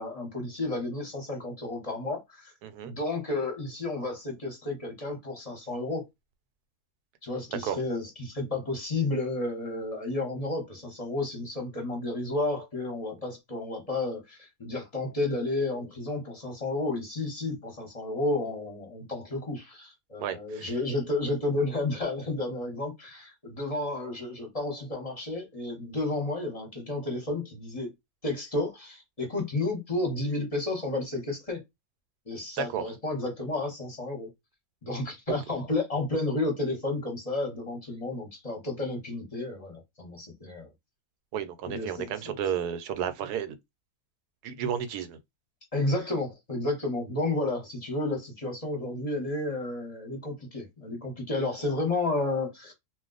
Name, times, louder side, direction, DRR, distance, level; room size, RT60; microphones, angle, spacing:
voice 1, 0.0-2.5 2.8-6.1 7.2-27.9 28.2-31.6 32.3-34.3 34.8-40.7 41.7-42.4 45.7-52.7, left 2 dB, 30° left, 0.8 m, -31 dB
voice 2, 2.6-2.9 7.6-7.8 20.2-20.7 32.6-32.8 41.3-43.5 44.4-45.2, right 9 dB, 85° right, 1.1 m, -32 dB
2.4 x 2.2 x 3.8 m
omnidirectional pair, 1.6 m